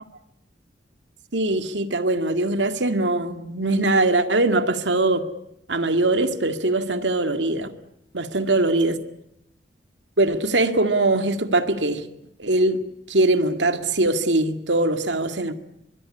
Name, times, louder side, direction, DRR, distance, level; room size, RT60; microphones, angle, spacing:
voice 1, 1.3-5.3 5.7-7.7 8.1-9.0 10.2-12.1 12.4-12.8 13.1-15.5, right 2 dB, 90° right, 2.1 m, -21 dB
24.0 x 22.0 x 9.9 m
head